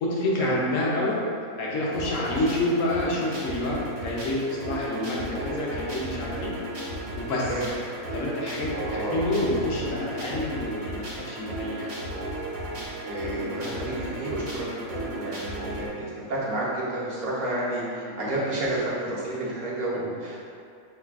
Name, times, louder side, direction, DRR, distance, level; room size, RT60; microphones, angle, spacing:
voice 1, 0.0-1.2 1.6-6.5 7.2-7.5 8.1-11.9 18.1-18.3, left 1 dB, 65° left, -4 dB, 1.0 m, -28 dB
sound 1, 1.9-15.9, right 1 dB, 60° right, 1.0 m, -35 dB
voice 2, 8.7-9.2 13.0-20.4, right 1 dB, 35° right, -8 dB, 0.7 m, -30 dB
5.5 x 2.4 x 2.4 m, 2.4 s
omnidirectional pair, 1.6 m